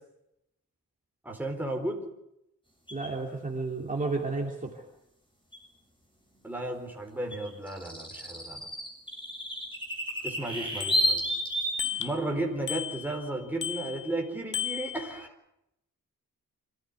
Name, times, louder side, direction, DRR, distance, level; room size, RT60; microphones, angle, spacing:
voice 1, 1.2-2.0 6.4-8.7 10.2-11.2 12.0-15.3, right 1 dB, 5° right, 1 dB, 4.1 m, -34 dB
sound 1, 2.9-3.1 5.5-5.6 7.3-11.9, equal, 15° left, 7.3 m, -31 dB
voice 2, 2.9-4.8, right 3 dB, 25° right, 0 dB, 2.7 m, -32 dB
Bicycle bell, 10.3-10.4 10.8-11.4 11.8-12.3 12.7-13.3 13.6-14.2 14.5-15.3, left 10 dB, 70° left, 1.1 m, -35 dB
26.0 x 14.5 x 9.6 m, 0.84 s
wide cardioid pair, 145°, 32 cm